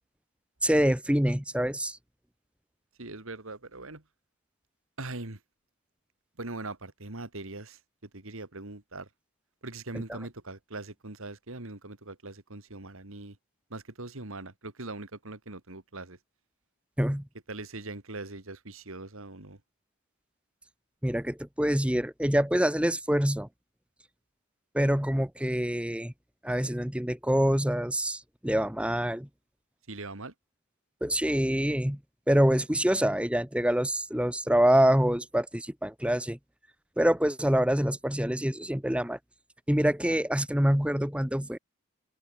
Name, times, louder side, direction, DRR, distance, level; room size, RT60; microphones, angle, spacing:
voice 1, 0.6-2.0 17.0-17.2 21.0-23.5 24.7-26.1 26.4-29.3 31.0-32.0 32.3-36.4 37.0-39.2 39.7-41.6, equal, 5° right, 1.2 m, -26 dB
voice 2, 3.0-4.0 5.0-5.4 6.4-9.1 9.6-13.4 13.7-16.2 17.5-19.6 29.9-30.3, right 2 dB, 65° right, 2.2 m, -41 dB
head